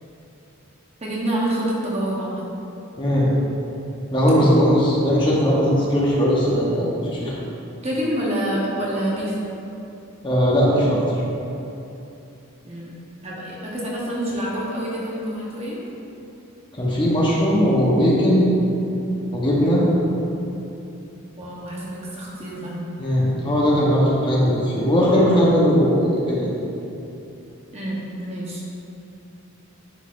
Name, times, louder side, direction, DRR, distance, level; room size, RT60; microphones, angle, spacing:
voice 1, 1.0-2.5 4.3-4.5 7.8-9.4 12.6-15.8 21.4-22.8 27.7-28.6, right 1 dB, 30° right, -5 dB, 0.9 m, -27 dB
voice 2, 3.0-3.3 4.1-7.3 10.2-11.0 16.7-18.5 19.3-19.9 23.0-26.5, equal, 20° left, -6 dB, 0.9 m, -18 dB
9.9 x 4.0 x 2.5 m, 2.9 s
head